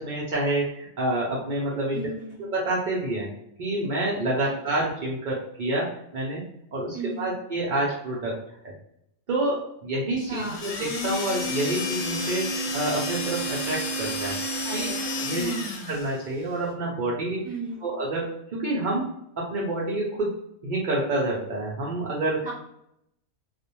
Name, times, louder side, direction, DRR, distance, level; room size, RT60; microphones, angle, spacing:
voice 1, 0.0-2.1 2.4-3.3 3.6-6.4 6.7-8.4 8.6-8.7 9.3-14.4 14.7-14.9 15.2-15.5 15.9-17.5 17.8-19.1 19.4-20.3 20.6-22.5, right 2 dB, 85° right, -4 dB, 0.4 m, -28 dB
voice 2, 1.9-2.4 4.4-4.5 6.9-7.3 10.2-10.6 14.6-15.7 17.4-17.8, right 3 dB, 5° right, -7 dB, 1.0 m, -35 dB
sound 1, 10.3-16.2, left 1 dB, 80° left, 1.1 m, -30 dB
2.4 x 2.1 x 2.8 m, 0.75 s
omnidirectional pair, 1.5 m